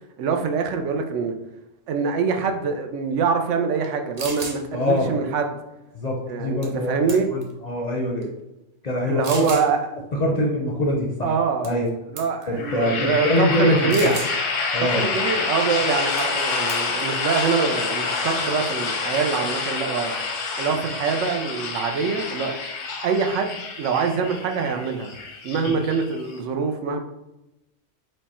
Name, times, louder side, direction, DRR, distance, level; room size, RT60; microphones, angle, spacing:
voice 1, 0.2-1.3 1.9-5.5 6.3-7.3 9.1-9.8 11.2-11.7 12.1-14.2 14.8-22.5 23.0-25.1 25.4-27.0, right 5 dB, 80° right, 5 dB, 0.9 m, -24 dB
sound 1, 3.8-3.9 4.2-4.6 6.6-6.8 7.1-7.5 8.2-8.3 9.2-9.7 11.6-11.9 12.2-12.4 13.9-14.4 16.2-16.4 16.7-17.0, right 3 dB, 45° right, 0.6 m, -33 dB
voice 2, 4.7-5.1 5.9-8.3 8.8-9.5 10.1-11.3 11.6-11.9 12.5-14.1 14.7-15.1, left 1 dB, 45° left, -1 dB, 0.5 m, -24 dB
sound 2, 12.6-26.4, left 4 dB, 90° left, 1.1 m, -28 dB
4.9 x 2.2 x 4.2 m, 0.94 s
omnidirectional pair, 1.2 m